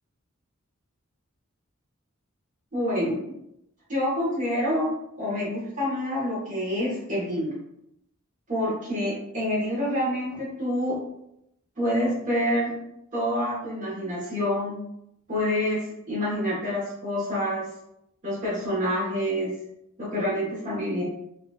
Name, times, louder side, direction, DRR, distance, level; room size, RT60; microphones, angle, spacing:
voice 1, 2.7-3.2 3.9-7.5 8.5-11.0 11.8-12.7 13.1-14.8 15.3-17.7 18.2-19.5 20.0-21.0, equal, 40° right, -7 dB, 1.4 m, -27 dB
4.0 x 2.7 x 2.4 m, 0.80 s
head